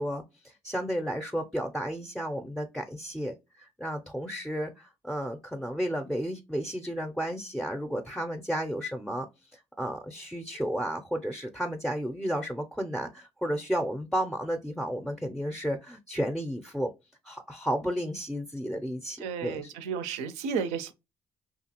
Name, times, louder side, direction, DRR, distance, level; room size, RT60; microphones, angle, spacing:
voice 1, 0.0-9.3 9.8-16.9 17.2-19.7, equal, 5° left, 0.4 m, -32 dB
voice 2, 19.2-20.9, right 6 dB, 85° right, 0.4 m, -32 dB
2.8 x 2.3 x 2.8 m
supercardioid pair, 65°, 11 cm